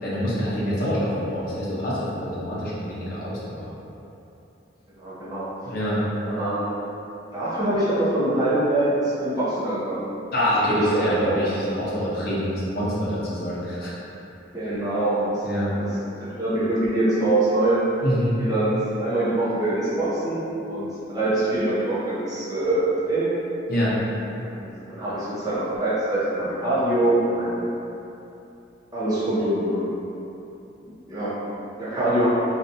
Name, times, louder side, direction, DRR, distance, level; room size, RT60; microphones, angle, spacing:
voice 1, 0.0-3.7 5.6-6.0 10.3-13.9 15.4-15.7 18.0-18.4 23.7-23.9, equal, 50° left, -8 dB, 0.7 m, -25 dB
voice 2, 5.0-5.5 6.3-6.9 7.3-10.0 10.7-11.4 14.5-15.4 16.2-17.8 18.4-23.3 24.5-27.6 28.9-29.9 31.1-31.4 31.8-32.3, right 1 dB, 20° right, -11 dB, 0.7 m, -24 dB
2.8 x 2.3 x 2.6 m, 2.9 s
head